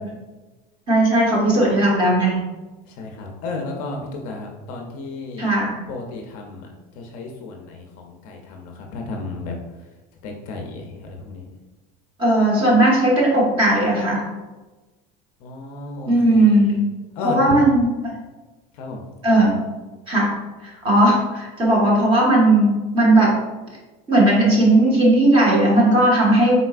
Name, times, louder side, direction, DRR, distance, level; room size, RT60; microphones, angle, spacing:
voice 1, 0.9-2.4 5.4-5.8 12.2-14.3 16.1-16.8 17.2-18.1 19.2-19.6 20.1-20.3 20.6-23.4 24.1-26.6, right 1 dB, 25° right, -4 dB, 1.0 m, -17 dB
voice 2, 2.9-5.5 5.9-9.5 10.2-11.5 15.4-16.6 17.1-17.6 18.7-19.5, left 3 dB, 45° left, 2 dB, 0.5 m, -33 dB
4.3 x 4.0 x 2.4 m, 1.2 s
cardioid pair, 180°, 20 cm